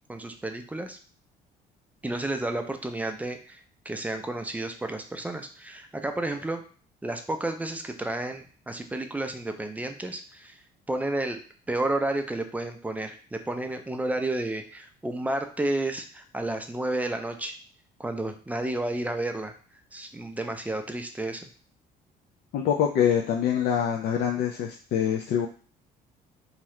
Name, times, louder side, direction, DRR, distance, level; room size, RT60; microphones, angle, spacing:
voice 1, 0.1-1.0 2.0-3.6 3.9-6.6 7.0-10.6 10.9-11.4 11.7-17.6 18.0-19.5 19.9-21.5, right 2 dB, 10° right, 5 dB, 0.4 m, -31 dB
voice 2, 22.5-25.5, left 8 dB, 65° left, 0 dB, 0.4 m, -25 dB
2.8 x 2.4 x 3.1 m, 0.41 s
cardioid pair, 110°, 17 cm